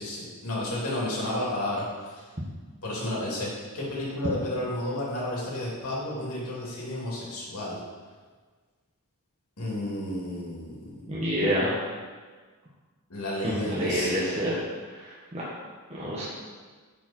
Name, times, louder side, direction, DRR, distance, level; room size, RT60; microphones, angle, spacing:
voice 1, 0.0-2.3 2.8-7.8 9.6-11.1 13.1-14.4, left 1 dB, 80° left, -5 dB, 2.8 m, -32 dB
voice 2, 11.1-11.8 13.4-14.6 14.9-15.0 15.3-15.4 15.9-16.2, equal, 30° right, -8 dB, 1.5 m, -27 dB
11.0 x 4.9 x 4.4 m, 1.5 s
head